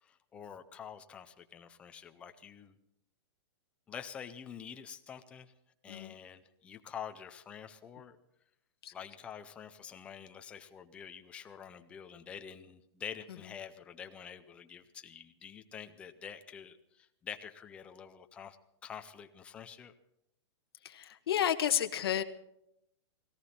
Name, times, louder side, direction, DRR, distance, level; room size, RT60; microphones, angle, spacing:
voice 1, 0.0-2.8 3.9-5.5 5.8-8.2 8.9-18.6 18.8-19.9, left 8 dB, 10° left, 8 dB, 0.5 m, -47 dB
voice 2, 20.8-22.2, left 10 dB, 55° left, 7 dB, 1.3 m, -31 dB
19.0 x 17.5 x 4.3 m, 0.80 s
hypercardioid pair, 180°, 15 cm